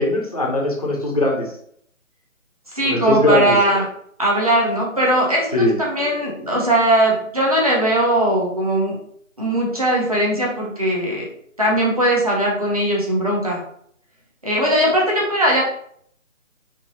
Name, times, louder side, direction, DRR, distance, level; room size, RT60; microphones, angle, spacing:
voice 1, 0.0-1.5 2.8-3.5 5.5-5.7, left 2 dB, 30° left, -2 dB, 0.5 m, -20 dB
voice 2, 2.7-3.8 4.2-9.0 9.4-11.3 11.6-13.6 14.4-15.6, right 1 dB, 25° right, -3 dB, 0.6 m, -19 dB
3.7 x 2.5 x 2.6 m, 0.66 s
figure-of-eight pair, 155°, 41 cm